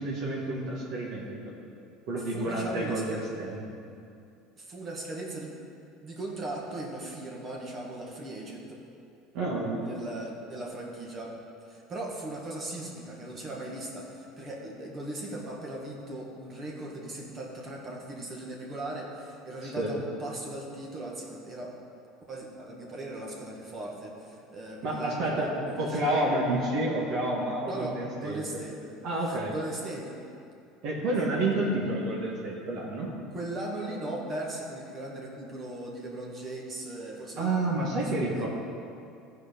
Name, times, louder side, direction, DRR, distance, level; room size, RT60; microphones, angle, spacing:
voice 1, 0.0-1.5 2.1-3.6 9.3-9.9 19.6-20.0 24.8-25.5 25.8-28.4 29.0-29.5 30.8-33.1 37.4-38.5, right 2 dB, 60° right, -4 dB, 1.8 m, -29 dB
voice 2, 2.2-3.2 4.6-5.5 6.0-8.8 9.8-11.4 11.7-21.7 22.3-26.0 27.6-28.9 29.3-30.2 33.3-37.5 37.8-38.5, right 1 dB, 30° right, -2 dB, 1.7 m, -38 dB
14.5 x 4.8 x 5.3 m, 2.5 s
supercardioid pair, 125°, 0 cm